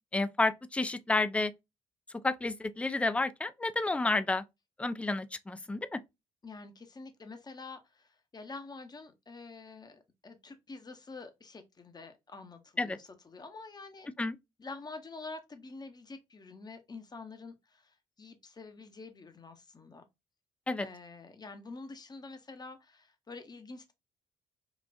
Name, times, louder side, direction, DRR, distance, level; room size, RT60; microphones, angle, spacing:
voice 1, 0.1-1.5 2.2-4.4 4.8-6.0 12.8-13.0 14.2-14.4 20.7-20.9, left 2 dB, 10° left, 0.3 m, -30 dB
voice 2, 6.4-14.1 14.6-20.0 20.8-23.9, left 3 dB, 25° left, 0.8 m, -47 dB
3.8 x 2.4 x 2.4 m
hypercardioid pair, 45°, 15 cm